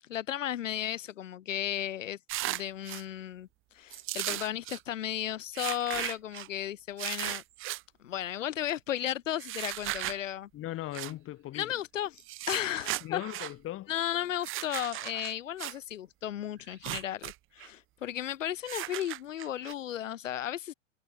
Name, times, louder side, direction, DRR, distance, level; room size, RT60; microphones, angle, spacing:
voice 1, 0.1-2.2 2.5-3.5 3.7-7.4 8.0-10.5 11.5-12.2 12.5-13.2 13.9-20.7, left 11 dB, 90° left, 0.8 m, -34 dB
sound 1, 2.3-3.0 3.9-4.8 5.5-6.5 7.0-7.8 9.4-10.2 10.9-11.1 12.2-13.5 14.4-15.8 16.7-17.3 17.6-17.7 18.7-19.7, right 16 dB, 35° right, 1.3 m, -36 dB
voice 2, 10.5-11.7 13.0-13.9, left 15 dB, 35° left, 3.2 m, -38 dB
hypercardioid pair, 110°, 37 cm